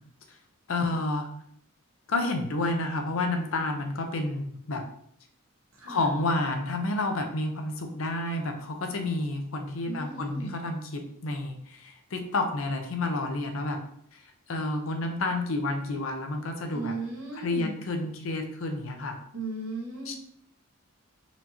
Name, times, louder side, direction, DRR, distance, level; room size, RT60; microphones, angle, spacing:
voice 1, 0.7-1.3 2.1-4.8 5.9-13.8 14.1-16.9 17.4-19.2 20.1-20.2, left 2 dB, 65° left, 5 dB, 0.6 m, -30 dB
voice 2, 5.7-6.1 9.8-10.6 16.7-17.8 19.3-20.2, right 3 dB, 65° right, -1 dB, 1.0 m, -36 dB
4.2 x 2.7 x 2.9 m, 0.66 s
head